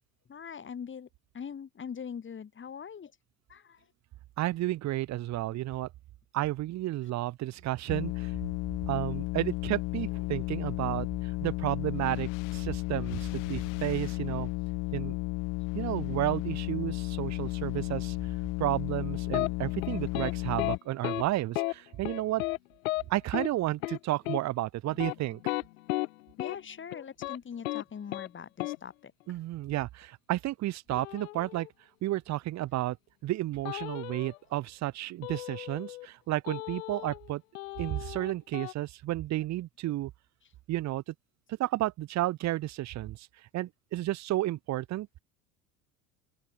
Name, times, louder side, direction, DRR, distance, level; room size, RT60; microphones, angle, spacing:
voice 1, 0.3-1.1 1.3-3.1 3.5-3.9 26.4-29.1, left 7 dB, 25° left, 4.4 m, -42 dB
voice 2, 4.4-5.9 6.3-8.3 8.9-11.1 11.4-14.5 14.9-15.1 15.7-18.2 18.6-22.4 23.1-25.4 29.3-31.7 32.0-33.0 33.2-37.4 37.8-40.1 40.7-41.1 41.5-43.3 43.5-45.1, right 15 dB, 35° right, 1.3 m, -32 dB
sound 1, 7.9-20.8, left 24 dB, 45° left, 1.0 m, -33 dB
sound 2, 19.3-19.5 19.8-20.3 20.6-20.8 21.0-21.2 21.6-21.7 22.0-22.6 22.9-23.0 23.3-23.5 23.8-24.0 24.3-24.4 24.9-26.1 26.4-26.6 26.9-27.4 27.6-27.8 28.1-28.3 28.6-28.8 30.9-31.7 33.7-34.4 35.2-36.1 36.5-37.3 37.5-38.7, left 19 dB, 60° left, 1.6 m, -34 dB
open air
figure-of-eight pair, 70°, 45 cm